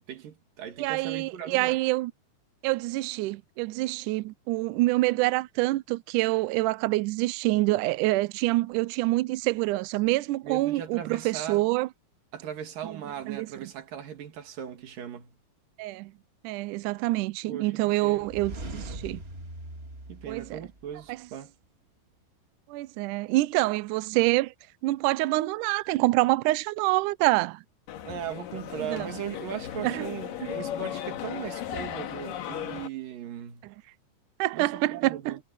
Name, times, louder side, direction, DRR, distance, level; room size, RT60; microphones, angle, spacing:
voice 1, 0.1-1.8 10.4-11.6 12.3-15.3 17.4-18.3 20.1-21.5 28.0-33.7 34.5-35.4, right 9 dB, 70° right, 3.7 m, -38 dB
voice 2, 0.8-2.1 2.6-11.9 12.9-13.0 13.3-13.5 15.8-16.1 16.4-19.2 20.3-20.6 21.1-21.2 22.7-24.5 24.8-27.6 28.9-29.1 29.8-30.1 33.6-33.7 34.4-35.4, right 19 dB, 85° right, 1.9 m, -26 dB
sound 1, 18.1-21.1, right 2 dB, 25° right, 1.4 m, -41 dB
sound 2, 27.9-32.9, left 10 dB, 75° left, 3.0 m, -36 dB
omnidirectional pair, 4.2 m